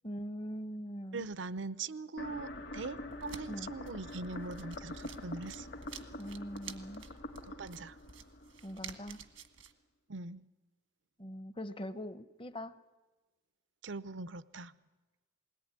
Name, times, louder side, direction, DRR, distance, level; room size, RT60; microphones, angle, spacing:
voice 1, 0.0-1.3 3.5-3.7 6.2-7.1 8.6-9.2 11.2-12.8, equal, 25° left, 12 dB, 0.8 m, -42 dB
voice 2, 1.1-5.7 7.5-8.0 10.1-10.4 13.8-14.7, right 3 dB, 75° right, 15 dB, 0.7 m, -41 dB
sound 1, 2.2-9.2, left 1 dB, 60° left, 1.9 m, -45 dB
sound 2, 3.1-9.7, right 7 dB, 90° right, 1.5 m, -51 dB
21.0 x 18.5 x 9.6 m, 1.2 s
head